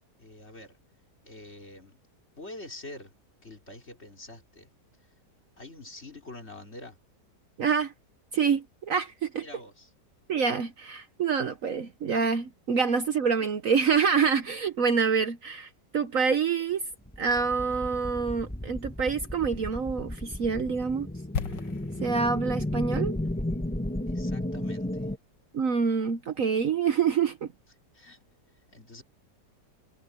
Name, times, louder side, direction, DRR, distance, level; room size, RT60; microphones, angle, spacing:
voice 1, 0.2-0.8 1.2-2.0 2.4-3.1 3.4-4.7 5.6-7.0 9.4-9.9 24.1-25.1 27.9-28.2 28.7-29.0, left 2 dB, 40° left, 4.2 m, -45 dB
voice 2, 7.6-7.9 8.3-9.4 10.3-16.8 17.2-21.1 22.0-23.1 25.5-27.5, right 6 dB, 55° right, 1.2 m, -26 dB
sound 1, 17.0-25.2, left 1 dB, 5° left, 1.4 m, -33 dB
sound 2, 21.3-25.3 25.5-25.7, left 6 dB, 85° left, 1.9 m, -39 dB
omnidirectional pair, 1.8 m